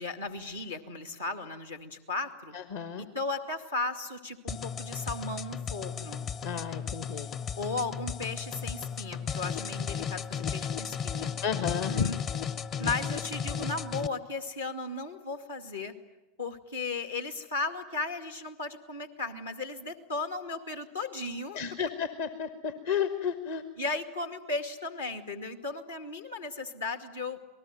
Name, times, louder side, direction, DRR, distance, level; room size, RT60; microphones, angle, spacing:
voice 1, 0.0-2.6 3.0-6.3 7.6-11.3 11.9-12.2 12.8-15.9 16.4-21.6 23.8-27.4, left 3 dB, 75° left, 8 dB, 2.3 m, -36 dB
voice 2, 2.5-3.1 6.4-7.3 11.4-12.1 21.5-23.6, left 7 dB, 60° left, 10 dB, 1.4 m, -32 dB
sound 1, 4.5-14.1, left 7 dB, 35° left, 0.8 m, -35 dB
27.5 x 19.5 x 9.5 m, 1.1 s
figure-of-eight pair, 85°, 0 cm